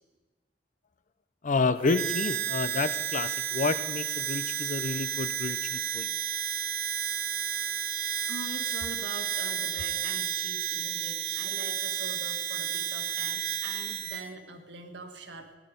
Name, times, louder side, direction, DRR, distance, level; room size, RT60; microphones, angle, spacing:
voice 1, 1.4-6.1, left 4 dB, 45° left, 13 dB, 0.6 m, -29 dB
Harmonica, 1.8-14.3, right 10 dB, 60° right, 0.8 m, -32 dB
voice 2, 8.3-15.5, right 2 dB, 85° right, 5 dB, 1.6 m, -43 dB
16.5 x 10.5 x 5.2 m, 1.3 s
head